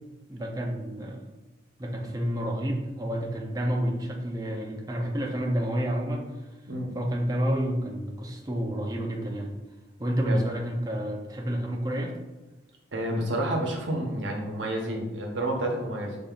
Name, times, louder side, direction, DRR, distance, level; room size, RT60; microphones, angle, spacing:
voice 1, 0.3-1.3 1.8-6.3 6.9-9.5 10.0-12.1, equal, 20° right, 2 dB, 0.5 m, -29 dB
voice 2, 12.9-16.2, right 1 dB, 75° right, 1 dB, 0.9 m, -29 dB
5.4 x 3.9 x 2.4 m, 1.1 s
head